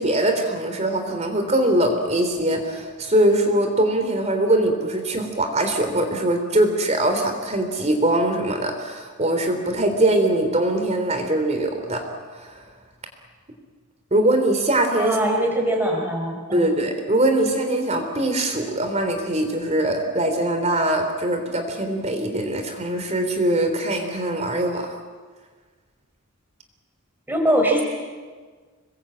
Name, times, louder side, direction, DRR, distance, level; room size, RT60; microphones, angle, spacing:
voice 1, 0.0-12.0 12.3-12.6 14.1-15.2 16.5-24.9, right 1 dB, 30° right, 5 dB, 3.4 m, -22 dB
voice 2, 15.0-16.7 27.3-27.8, right 1 dB, 10° right, 0 dB, 5.2 m, -22 dB
27.0 x 21.5 x 8.7 m, 1.5 s
head